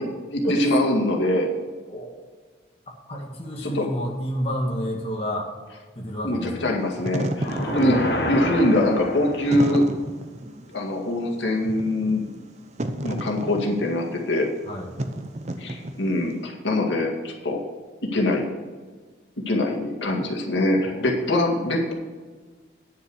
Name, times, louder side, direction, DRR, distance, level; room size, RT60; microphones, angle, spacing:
voice 1, 0.6-1.5 3.6-3.9 6.2-9.8 10.7-12.3 13.0-14.5 15.6-17.6 18.1-18.5 19.5-21.9, left 1 dB, 85° left, 0 dB, 2.1 m, -23 dB
voice 2, 3.1-5.5 5.9-6.8 7.4-8.0 14.6-14.9 20.8-21.1, equal, 30° left, -2 dB, 1.7 m, -30 dB
Wind / Fire, 6.8-16.3, right 1 dB, 40° right, 0.8 m, -32 dB
sound 1, 7.4-9.7, equal, 60° left, 1.6 m, -28 dB
10.0 x 6.7 x 6.3 m, 1.4 s
head